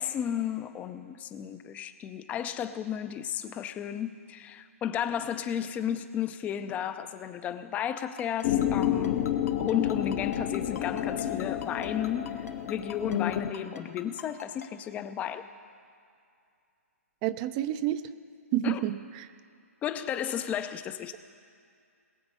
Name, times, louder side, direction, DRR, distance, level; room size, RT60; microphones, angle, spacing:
voice 1, 0.0-12.3 12.6-15.4 18.6-18.8 19.8-21.2, left 9 dB, 20° left, 11 dB, 0.6 m, -33 dB
Ringtone, 8.0-14.7, left 6 dB, 80° left, 1.5 m, -44 dB
sound 1, 8.4-13.5, left 10 dB, 40° left, 1.0 m, -30 dB
voice 2, 17.2-18.0 18.5-19.3, right 13 dB, 30° right, 13 dB, 0.6 m, -29 dB
21.0 x 7.9 x 5.5 m, 2.4 s
hypercardioid pair, 140°, 8 cm